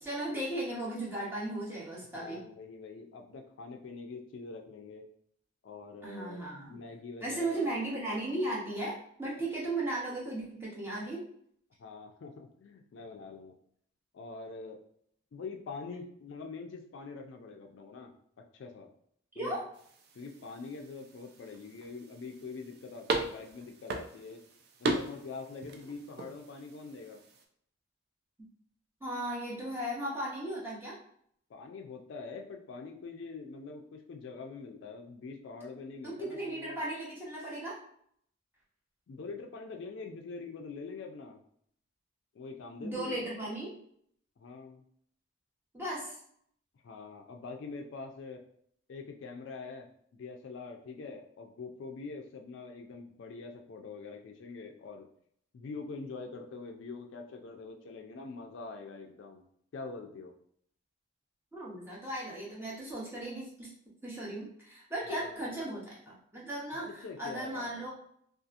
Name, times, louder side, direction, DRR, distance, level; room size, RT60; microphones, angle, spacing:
voice 1, 0.0-2.4 6.0-6.8 7.2-11.2 19.4-19.6 29.0-31.0 36.0-37.8 42.8-43.8 45.7-46.2 61.5-63.7 64.0-67.9, right 1 dB, 10° right, -5 dB, 0.7 m, -36 dB
voice 2, 2.1-5.0 5.6-7.7 11.8-13.5 14.1-14.8 15.3-18.1 18.5-18.9 19.4-19.6 20.1-24.4 24.8-27.2 31.5-36.8 39.1-41.4 42.3-43.2 44.4-44.8 46.8-48.4 48.9-49.9 50.1-55.1 55.5-59.5 59.7-60.3 65.1-65.5 66.7-67.9, left 4 dB, 65° left, 3 dB, 0.3 m, -44 dB
sound 1, 19.7-27.4, right 2 dB, 50° right, 0.3 m, -39 dB
2.7 x 2.4 x 2.4 m, 0.66 s
head